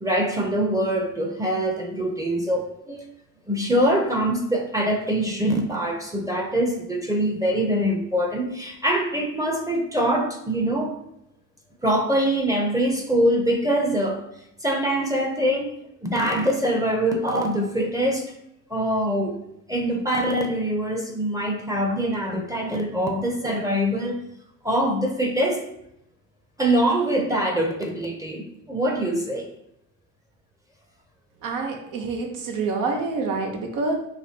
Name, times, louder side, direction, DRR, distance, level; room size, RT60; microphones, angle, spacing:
voice 1, 0.0-3.1 3.5-11.0 11.8-14.2 14.6-15.7 16.0-18.3 18.7-19.4 19.7-24.2 24.6-25.6 26.6-29.5, right 1 dB, 10° right, 2 dB, 0.5 m, -24 dB
voice 2, 31.4-33.9, right 3 dB, 85° right, 2 dB, 0.8 m, -27 dB
4.9 x 3.1 x 2.8 m, 0.80 s
cardioid pair, 130°, 31 cm